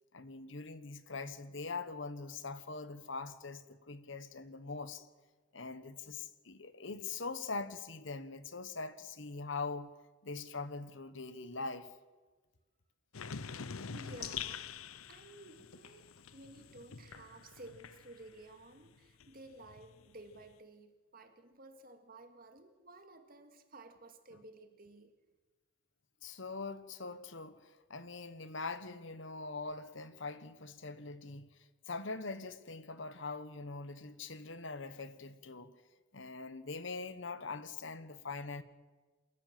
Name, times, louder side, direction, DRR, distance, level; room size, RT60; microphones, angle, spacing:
voice 1, 0.1-5.1 5.5-9.9 10.2-11.9 26.2-31.6 31.9-35.7 36.1-38.6, left 3 dB, 65° left, 1.3 m, -43 dB
sound 1, 13.1-18.5 18.8-20.5, left 7 dB, 90° left, 0.8 m, -46 dB
voice 2, 13.9-25.1, right 2 dB, 45° right, 2.1 m, -54 dB
27.5 x 14.0 x 7.5 m
head